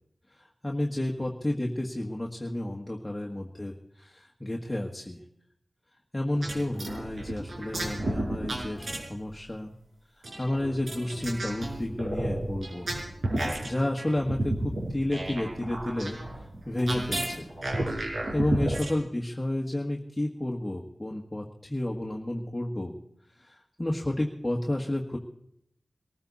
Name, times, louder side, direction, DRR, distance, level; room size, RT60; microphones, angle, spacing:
voice 1, 0.4-5.2 6.1-9.7 10.2-12.9 13.3-16.2 16.7-17.5 18.3-22.9 23.4-25.2, left 1 dB, 20° left, -1 dB, 1.7 m, -31 dB
sound 1, 6.3-9.3 10.2-18.9, right 1 dB, 75° right, 5.5 m, -32 dB
23.5 x 14.5 x 4.2 m, 0.75 s
wide cardioid pair, 55°, 0 cm